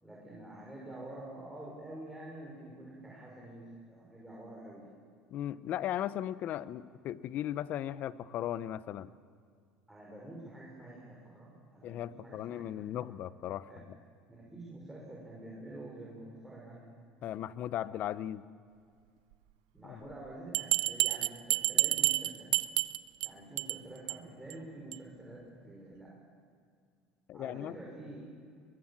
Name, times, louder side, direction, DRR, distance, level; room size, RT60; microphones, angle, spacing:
voice 1, 0.0-4.9 9.9-12.6 13.7-13.8 14.3-16.8 19.7-22.6 23.2-26.1 27.3-28.3, right 1 dB, 5° right, -4 dB, 6.0 m, -48 dB
voice 2, 5.3-9.1 11.8-13.7 17.2-18.4 19.8-20.1 27.3-27.8, left 11 dB, 55° left, 16 dB, 0.8 m, -37 dB
Bell, 20.5-23.3 23.6-23.8 24.1-24.2 24.5-24.6 24.9-25.0, right 20 dB, 85° right, 0.6 m, -29 dB
23.0 x 22.5 x 7.4 m, 2.2 s
supercardioid pair, 110°, 4 cm